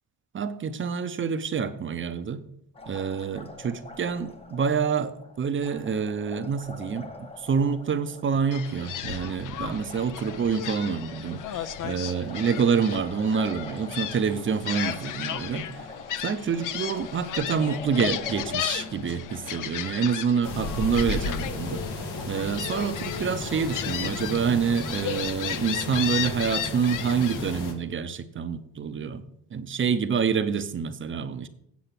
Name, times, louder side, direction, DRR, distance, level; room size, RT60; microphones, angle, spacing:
voice 1, 0.3-2.4 2.9-15.9 16.2-21.8 22.3-29.2 29.5-31.5, right 6 dB, 30° right, 0.7 m, -27 dB
Liquid, 2.7-22.3, left 3 dB, 15° left, 0.9 m, -45 dB
Gull seagull, 8.5-27.6, left 10 dB, 55° left, 0.6 m, -35 dB
sound 1, 20.4-27.7, left 2 dB, 85° left, 1.9 m, -34 dB
8.4 x 7.6 x 5.9 m
cardioid pair, 140°, 39 cm